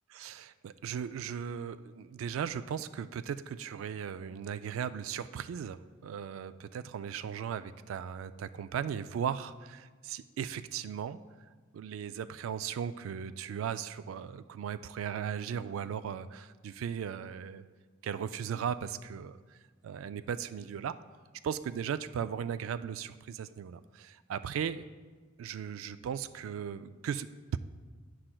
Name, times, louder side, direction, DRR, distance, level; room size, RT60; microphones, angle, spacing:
voice 1, 0.1-11.2 11.7-17.6 18.0-19.6 19.8-21.0 21.4-24.8 25.4-27.6, right 8 dB, 80° right, 13 dB, 0.3 m, -37 dB
9.8 x 7.6 x 2.2 m, 1.4 s
head